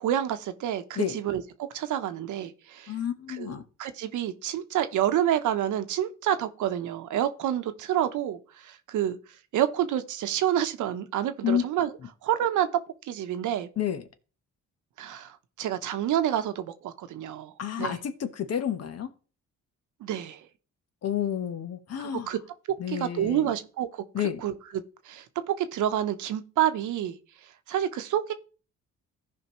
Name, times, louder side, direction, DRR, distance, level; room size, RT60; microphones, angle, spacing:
voice 1, 0.0-1.4 1.7-2.9 3.3-3.5 3.8-9.2 9.5-11.9 12.2-12.7 13.0-13.7 15.0-18.0 20.0-20.5 22.0-22.4 22.9-24.0 24.4-27.2 27.7-28.3, right 11 dB, 80° right, 1.0 m, -28 dB
voice 2, 2.9-3.6 11.4-11.6 13.8-14.0 17.6-19.1 21.0-22.3 22.8-23.5 24.1-24.4, left 9 dB, 55° left, 1.1 m, -30 dB
15.0 x 5.2 x 3.1 m
cardioid pair, 90°, 30 cm